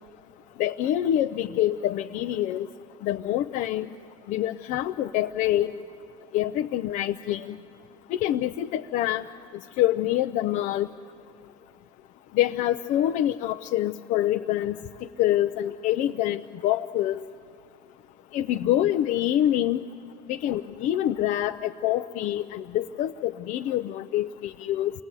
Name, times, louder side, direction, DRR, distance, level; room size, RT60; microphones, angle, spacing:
voice 1, 0.6-2.7 3.0-3.9 4.3-5.7 6.3-7.6 8.1-9.2 9.8-10.9 12.3-14.8 15.2-17.2 18.3-19.8 20.3-24.9, left 12 dB, 70° left, 6 dB, 0.6 m, -26 dB
27.5 x 20.5 x 8.2 m, 2.5 s
supercardioid pair, 90°, 14 cm